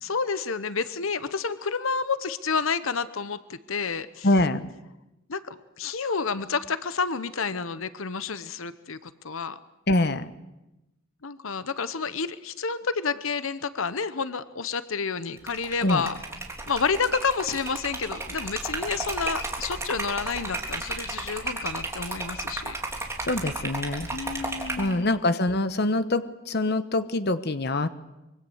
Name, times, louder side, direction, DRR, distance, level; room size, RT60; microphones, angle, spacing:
voice 1, 0.0-4.3 5.3-9.6 11.2-16.2 16.7-22.8 24.1-25.1, left 5 dB, 75° left, 14 dB, 1.0 m, -29 dB
voice 2, 4.2-4.6 9.9-10.3 15.8-16.1 23.2-24.1 24.8-27.9, left 2 dB, 50° left, 12 dB, 1.0 m, -24 dB
Liquid, 15.4-24.9, right 2 dB, 15° right, 3.5 m, -33 dB
25.0 x 23.0 x 8.0 m, 0.97 s
head